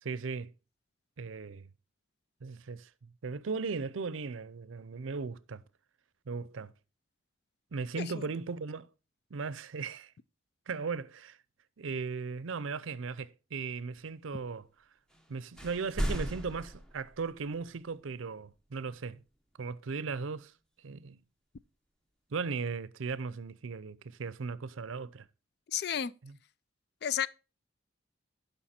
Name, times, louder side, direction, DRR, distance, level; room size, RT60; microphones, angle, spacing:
voice 1, 0.0-0.5 1.2-1.7 2.4-5.6 6.3-6.7 7.7-8.9 9.3-10.1 10.7-11.4 11.8-14.7 15.3-19.2 19.6-20.5 20.8-21.2 22.3-25.3 26.2-26.4, right 4 dB, 85° right, 0.5 m, -37 dB
sound 1, 15.1-15.3 15.5-17.6, equal, 5° left, 0.9 m, -36 dB
voice 2, 25.7-26.1 27.0-27.3, left 9 dB, 55° left, 0.4 m, -32 dB
11.5 x 5.5 x 4.3 m
head